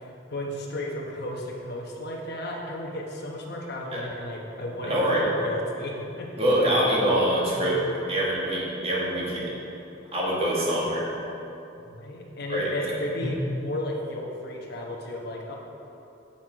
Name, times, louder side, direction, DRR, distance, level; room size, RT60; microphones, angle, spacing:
voice 1, 0.0-6.3 6.6-6.7 11.9-15.5, left 1 dB, 60° left, -1 dB, 1.1 m, -34 dB
voice 2, 4.8-5.3 6.4-9.5 10.1-11.1 12.5-12.9 13.2-13.3, right 1 dB, 30° right, -5 dB, 1.6 m, -25 dB
7.6 x 5.7 x 4.5 m, 2.9 s
head